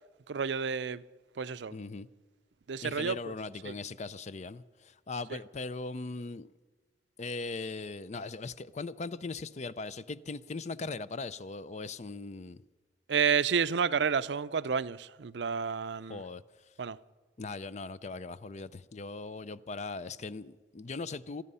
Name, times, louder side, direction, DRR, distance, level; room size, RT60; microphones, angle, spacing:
voice 1, 0.3-1.0 1.4-1.7 2.7-3.3 3.7-3.8 13.1-16.2 16.8-17.0, right 6 dB, 80° right, 0.5 m, -30 dB
voice 2, 1.7-2.1 2.8-6.5 7.2-12.6 16.1-16.4 17.4-21.4, left 3 dB, 40° left, 0.5 m, -39 dB
26.5 x 9.7 x 5.6 m
head